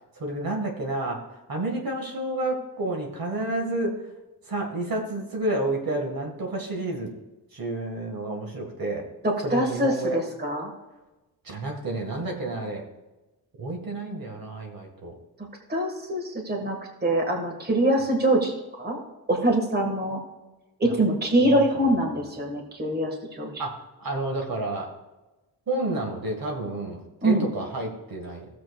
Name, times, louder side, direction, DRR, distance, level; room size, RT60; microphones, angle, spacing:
voice 1, 0.2-3.9 4.4-7.1 7.5-9.1 9.4-10.2 11.4-12.9 13.6-15.1 20.8-20.9 21.4-21.6 23.6-24.9 25.7-28.5, right 2 dB, 60° right, 1 dB, 1.8 m, -30 dB
voice 2, 9.2-10.7 15.7-18.5 18.8-19.0 19.3-20.2 20.8-23.6 27.2-27.4, right 1 dB, 25° right, 1 dB, 1.7 m, -24 dB
16.0 x 7.5 x 2.4 m, 1.1 s
wide cardioid pair, 125°, 40 cm